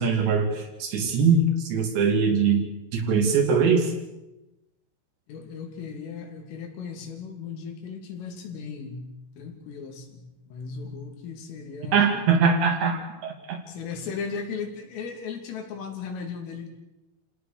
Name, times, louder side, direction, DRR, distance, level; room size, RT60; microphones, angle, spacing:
voice 1, 0.0-2.6 2.9-3.9 11.9-13.6, right 5 dB, 65° right, 3 dB, 4.7 m, -22 dB
voice 2, 5.3-9.1 9.4-12.1 13.7-16.7, left 5 dB, 80° left, 3 dB, 5.5 m, -36 dB
29.0 x 18.0 x 6.8 m, 0.98 s
omnidirectional pair, 5.7 m